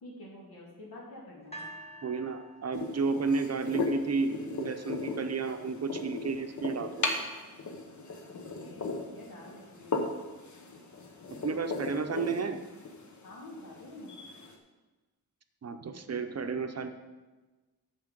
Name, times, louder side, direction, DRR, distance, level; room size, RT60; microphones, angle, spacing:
voice 1, 0.0-1.7 8.3-10.0 13.2-14.2, left 1 dB, 85° left, -3 dB, 2.8 m, -48 dB
sound 1, 1.5-4.7 5.5-5.6, right 1 dB, 20° left, 1.2 m, -49 dB
voice 2, 2.0-7.1 11.3-12.6 15.6-16.9, right 4 dB, 45° right, 7 dB, 0.7 m, -32 dB
sound 2, 2.7-14.6, left 3 dB, 55° left, 1.1 m, -37 dB
9.6 x 6.9 x 5.2 m, 1.2 s
wide cardioid pair, 170°, 35 cm